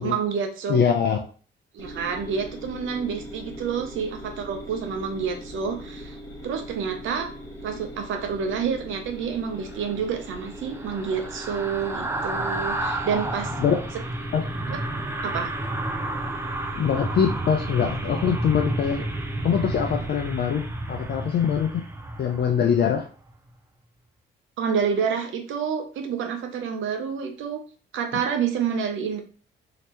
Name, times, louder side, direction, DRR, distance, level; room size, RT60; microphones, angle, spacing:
voice 1, 0.0-0.8 1.7-6.2 6.4-7.3 7.6-13.5 14.7-14.8 15.2-15.5 24.6-27.6 27.9-29.2, right 6 dB, 75° right, 5 dB, 0.8 m, -28 dB
voice 2, 0.7-1.2 13.6-13.8 14.3-14.4 16.8-19.0 19.4-21.8 22.2-23.1, left 7 dB, 55° left, 2 dB, 0.6 m, -23 dB
sound 1, 1.8-20.1, equal, 15° left, 1.0 m, -41 dB
sound 2, 9.6-23.0 23.3-23.5, right 2 dB, 10° right, 0.5 m, -31 dB
3.2 x 3.0 x 3.0 m, 0.40 s
cardioid pair, 90°, 20 cm